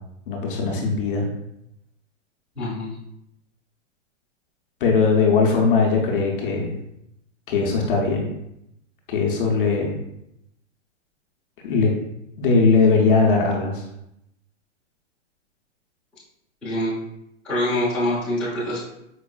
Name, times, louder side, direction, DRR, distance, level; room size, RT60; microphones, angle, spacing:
voice 1, 0.3-1.3 4.8-6.7 7.5-8.3 9.1-10.0 11.6-11.9 12.4-13.8, left 4 dB, 45° left, 0 dB, 0.6 m, -20 dB
voice 2, 2.6-2.9 16.6-16.9 17.4-18.8, left 1 dB, ahead, -12 dB, 0.6 m, -24 dB
4.6 x 2.4 x 2.3 m, 0.81 s
hypercardioid pair, 160°, 38 cm